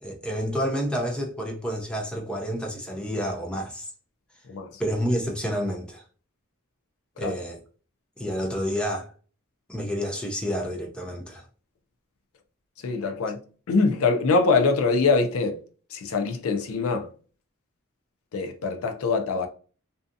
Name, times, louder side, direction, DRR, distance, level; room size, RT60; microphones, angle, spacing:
voice 1, 0.0-3.9 4.8-6.0 7.2-7.6 8.2-9.1 9.7-11.4, equal, 5° left, 0.4 m, -29 dB
voice 2, 12.8-13.4 13.7-15.6 15.9-17.1 18.3-19.5, left 4 dB, 65° left, 0.4 m, -23 dB
2.6 x 2.3 x 2.5 m
head